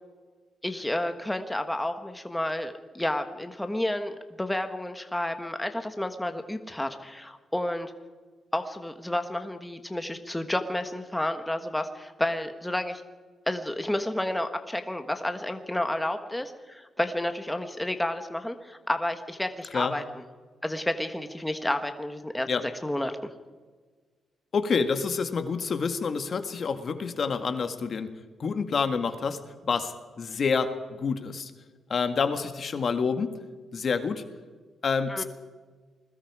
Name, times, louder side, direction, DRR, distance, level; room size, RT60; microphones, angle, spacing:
voice 1, 0.6-7.9 8.5-13.0 13.5-20.2 20.6-23.2 35.1-35.2, left 1 dB, 5° left, 7 dB, 1.4 m, -31 dB
voice 2, 24.5-28.1 28.4-31.5 31.9-33.4 33.7-34.2 34.8-35.2, left 5 dB, 45° left, 8 dB, 1.8 m, -28 dB
28.0 x 21.0 x 4.9 m, 1.4 s
cardioid pair, 120°, 0 cm